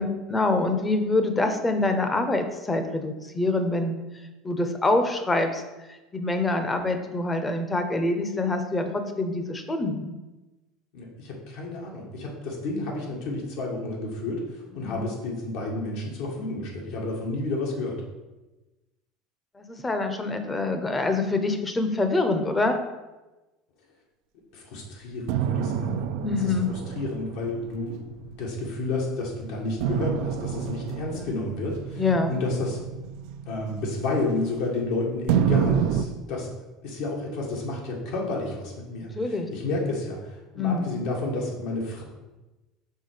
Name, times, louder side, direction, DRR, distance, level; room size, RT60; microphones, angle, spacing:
voice 1, 0.0-3.9 4.4-5.6 5.9-10.1 14.8-15.1 19.6-22.8 25.6-26.7 31.1-31.3 32.0-32.3 39.2-39.5 40.6-40.9, left 2 dB, 15° left, 7 dB, 0.7 m, -26 dB
voice 2, 10.9-14.4 14.7-18.0 24.5-26.5 27.0-32.8 33.5-36.5 36.8-42.0, left 2 dB, 75° left, -1 dB, 1.7 m, -31 dB
sound 1, 25.3-29.0 29.8-34.8 35.3-36.0, right 8 dB, 75° right, 0.4 m, -29 dB
5.6 x 3.8 x 4.9 m, 1.1 s
supercardioid pair, 115°, 0 cm